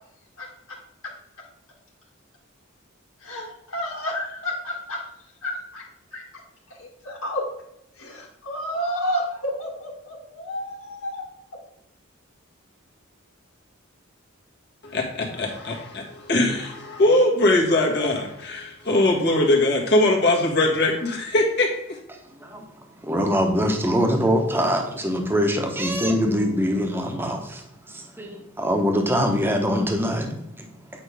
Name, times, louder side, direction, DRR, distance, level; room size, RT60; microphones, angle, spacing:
voice 1, 3.2-5.0 5.4-5.8 6.1-6.2 6.8-7.4 8.0-11.2, equal, 80° left, -3 dB, 2.1 m, -30 dB
voice 2, 14.8-22.0, left 1 dB, 55° left, -1 dB, 1.7 m, -21 dB
voice 3, 23.0-30.6, equal, 10° right, 3 dB, 1.0 m, -23 dB
8.7 x 5.1 x 3.4 m, 0.81 s
head